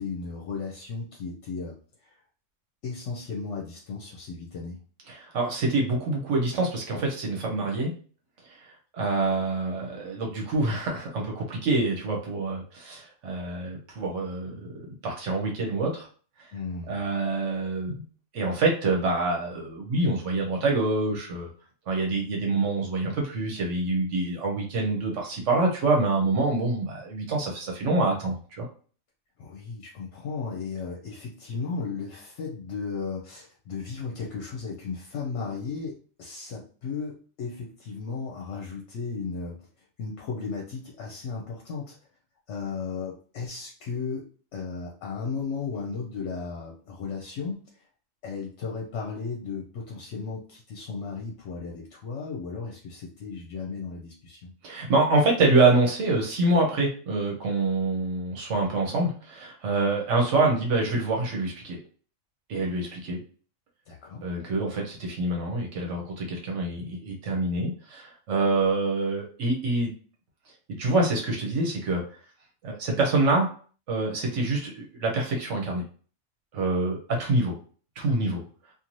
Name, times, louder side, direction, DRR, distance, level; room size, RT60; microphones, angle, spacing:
voice 1, 0.0-1.7 2.0-2.1 2.8-4.8 16.5-17.0 29.4-39.6 40.0-42.0 42.5-44.2 44.5-47.8 48.2-54.5 63.9-64.2, left 5 dB, 75° left, -1 dB, 0.9 m, -35 dB
voice 2, 5.1-7.9 8.4-16.1 16.9-17.9 18.3-21.5 21.9-28.7 54.6-61.8 62.5-63.2 64.2-69.9 70.8-72.0 72.6-73.5 73.9-75.8 76.5-77.6 78.0-78.4, right 2 dB, 70° right, 0 dB, 1.1 m, -26 dB
2.6 x 2.5 x 3.0 m, 0.41 s
omnidirectional pair, 1.3 m